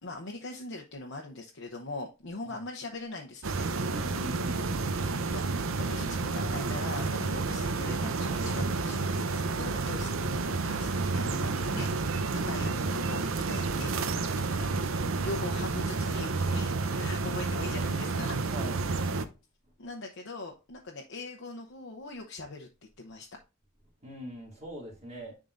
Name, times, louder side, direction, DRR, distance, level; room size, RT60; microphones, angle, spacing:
voice 1, 0.0-3.4 5.2-10.2 10.6-14.1 14.5-18.6 19.8-22.7 23.0-23.3, left 2 dB, 75° left, 0.8 m, -41 dB
sound 1, 3.4-19.2, right 3 dB, 85° right, 0.7 m, -30 dB
voice 2, 3.9-4.7 18.5-18.9 24.0-25.3, equal, 35° right, 2.3 m, -42 dB
10.0 x 3.7 x 2.5 m
head